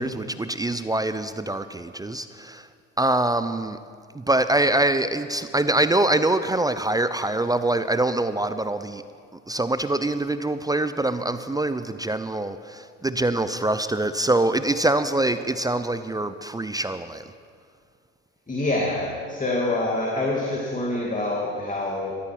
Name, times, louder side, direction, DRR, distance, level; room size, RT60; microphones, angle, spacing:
voice 1, 0.0-2.7 3.0-3.8 4.1-9.0 9.5-17.2, right 2 dB, 10° right, 11 dB, 0.5 m, -24 dB
voice 2, 18.5-22.1, left 2 dB, 20° left, -2 dB, 2.3 m, -26 dB
13.5 x 13.0 x 5.9 m, 2.2 s
hypercardioid pair, 80°, 38 cm